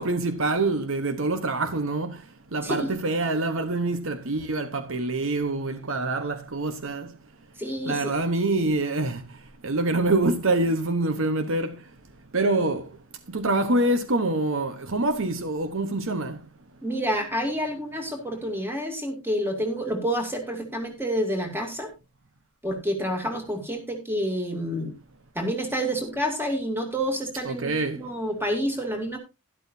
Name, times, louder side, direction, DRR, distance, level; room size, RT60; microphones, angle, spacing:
voice 1, 0.0-2.2 2.5-7.1 7.9-9.2 9.6-11.7 12.3-12.9 13.3-16.4 27.4-28.0, right 2 dB, 60° right, 1.0 m, -25 dB
voice 2, 7.6-8.1 16.8-21.9 22.6-24.9 25.3-29.2, equal, 10° right, 2.5 m, -28 dB
12.0 x 11.5 x 2.7 m
head